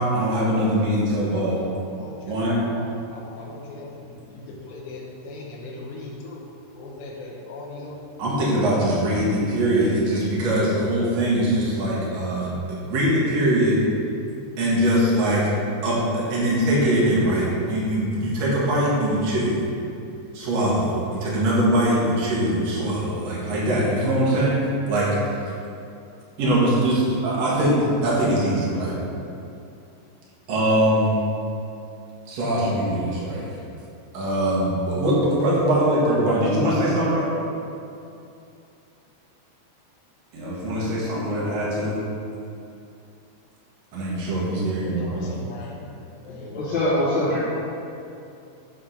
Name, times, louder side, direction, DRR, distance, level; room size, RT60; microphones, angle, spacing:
voice 1, 0.0-1.6 2.2-2.6 8.2-13.8 14.6-15.5 15.8-19.6 20.3-24.6 24.9-25.1 26.4-29.0 30.5-31.1 32.3-33.4 34.1-37.3 40.3-42.0 43.9-45.2, right 1 dB, 65° right, -7 dB, 1.6 m, -22 dB
voice 2, 2.0-6.5 6.8-8.0 44.8-45.8 46.2-47.4, left 3 dB, 75° left, -3 dB, 2.1 m, -39 dB
voice 3, 46.5-47.4, left 1 dB, 60° left, -11 dB, 1.9 m, -22 dB
8.6 x 3.8 x 5.6 m, 2.6 s
omnidirectional pair, 5.3 m